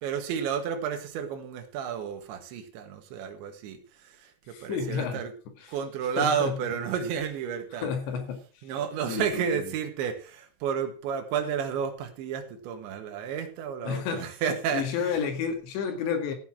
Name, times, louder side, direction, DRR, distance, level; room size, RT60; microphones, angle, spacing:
voice 1, 0.0-5.3 5.7-7.9 8.6-15.1, right 7 dB, 70° right, 3.8 m, -31 dB
voice 2, 4.5-5.2 5.6-5.7 6.2-6.6 7.8-8.4 9.1-9.7 13.9-14.3 14.7-16.3, left 6 dB, 65° left, 4.0 m, -31 dB
14.5 x 6.9 x 5.9 m
omnidirectional pair, 5.8 m